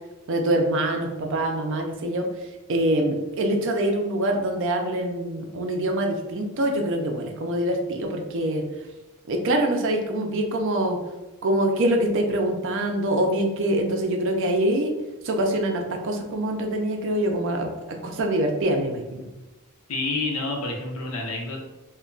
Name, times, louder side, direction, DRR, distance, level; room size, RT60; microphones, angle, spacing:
voice 1, 0.3-2.3 2.7-8.6 9.3-11.0 11.4-14.9 15.2-17.7 18.0-19.3, right 1 dB, 60° right, 3 dB, 0.4 m, -24 dB
voice 2, 19.9-21.6, left 2 dB, 80° left, 1 dB, 0.6 m, -28 dB
2.2 x 2.2 x 3.7 m, 1.1 s
head